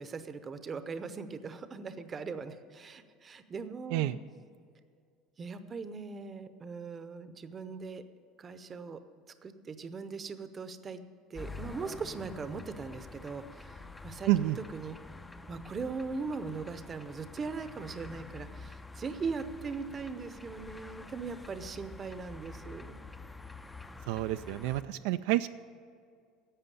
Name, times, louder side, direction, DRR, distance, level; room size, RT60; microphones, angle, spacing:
voice 1, 0.0-4.1 5.4-8.0 8.4-9.0 9.4-11.0 11.3-14.3 14.7-15.0 15.5-23.0, right 4 dB, 25° right, 11 dB, 0.7 m, -40 dB
sound 1, 11.4-24.8, left 3 dB, 10° left, 0.5 m, -47 dB
voice 2, 14.3-14.6 24.1-25.5, right 15 dB, 75° right, 11 dB, 0.3 m, -29 dB
11.5 x 7.8 x 8.3 m, 2.2 s
cardioid pair, 140°, 0 cm